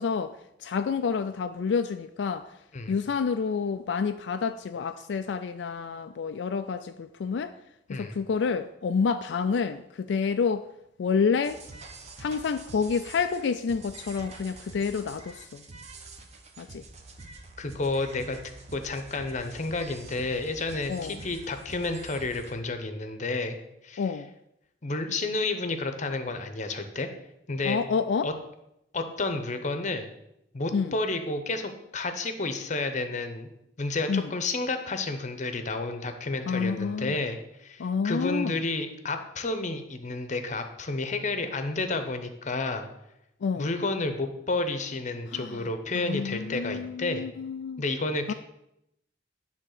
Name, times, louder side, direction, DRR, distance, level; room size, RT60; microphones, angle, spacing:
voice 1, 0.0-2.6 2.9-7.5 7.9-10.7 11.0-11.6 12.2-15.6 16.6-16.8 20.9-21.2 24.0-24.3 27.6-28.3 30.7-30.9 34.1-34.3 36.5-37.2 37.8-38.6 43.4-43.7 45.3-45.7 45.9-47.8 48.3-48.4, left 5 dB, 80° left, 0.4 m, -29 dB
sound 1, 11.4-22.5, right 3 dB, 40° right, 1.0 m, -46 dB
voice 2, 17.6-18.4 18.7-23.5 23.8-24.0 24.8-27.1 27.5-27.8 28.2-28.3 28.9-30.1 30.5-33.5 33.8-42.9 43.6-47.2 47.8-48.3, left 3 dB, 45° left, 0.9 m, -31 dB
10.0 x 3.6 x 6.6 m
head